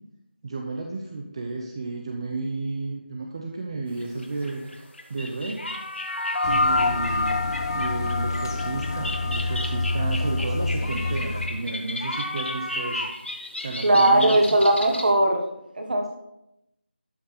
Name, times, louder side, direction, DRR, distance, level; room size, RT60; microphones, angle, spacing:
voice 1, 0.4-4.6 5.1-5.7 6.4-7.4 7.7-13.1 13.6-14.4, right 3 dB, 30° right, 2 dB, 0.7 m, -32 dB
sound 1, 4.0-15.1, left 1 dB, 90° left, 1.8 m, -34 dB
sound 2, 6.0-10.7, left 2 dB, 70° left, 0.6 m, -28 dB
sound 3, 6.4-11.5, left 2 dB, 20° left, 0.5 m, -29 dB
voice 2, 13.8-15.4 15.8-16.1, right 1 dB, 50° right, 4 dB, 1.6 m, -19 dB
12.5 x 5.2 x 4.2 m, 0.86 s
figure-of-eight pair, 165°, 6 cm